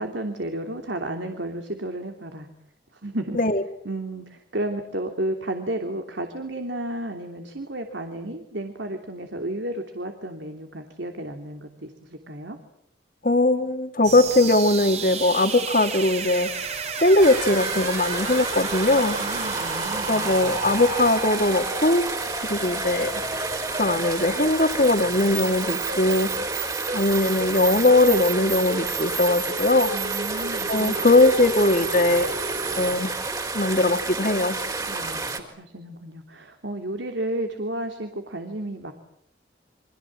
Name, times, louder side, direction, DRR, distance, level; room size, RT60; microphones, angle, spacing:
voice 1, 0.0-2.5 3.0-3.4 3.8-12.6 19.2-20.3 29.9-31.1 34.9-38.9, right 1 dB, 80° right, 5 dB, 3.0 m, -32 dB
voice 2, 13.2-16.5 17.0-19.2 20.1-22.1 22.5-23.2 23.7-26.3 26.9-29.9 30.7-32.4 32.8-33.1 33.5-34.6, left 2 dB, 50° left, 8 dB, 2.3 m, -20 dB
sound 1, 14.0-32.9, right 4 dB, 35° right, 3.2 m, -32 dB
sound 2, 17.2-35.4, right 3 dB, 20° right, 3.8 m, -30 dB
29.5 x 25.5 x 7.6 m, 0.73 s
head